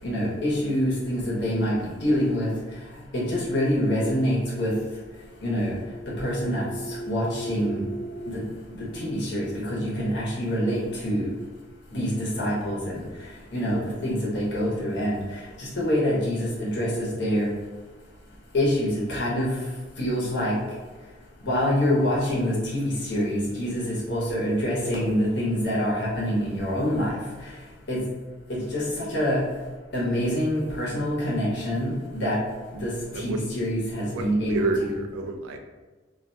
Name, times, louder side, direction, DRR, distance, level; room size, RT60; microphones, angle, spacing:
voice 1, 0.0-2.5 3.1-4.7 5.4-5.7 6.2-7.9 8.3-8.4 8.7-11.3 11.9-13.0 13.5-17.5 18.5-19.5 20.0-20.5 21.4-27.2 27.9-28.0 28.5-29.4 29.9-32.4 32.7-34.9, equal, 55° left, -5 dB, 0.8 m, -26 dB
sound 1, 5.0-8.4, right 1 dB, 35° left, 0.3 m, -38 dB
voice 2, 34.1-35.6, right 2 dB, 85° right, 5 dB, 0.3 m, -29 dB
2.3 x 2.1 x 2.6 m, 1.3 s
head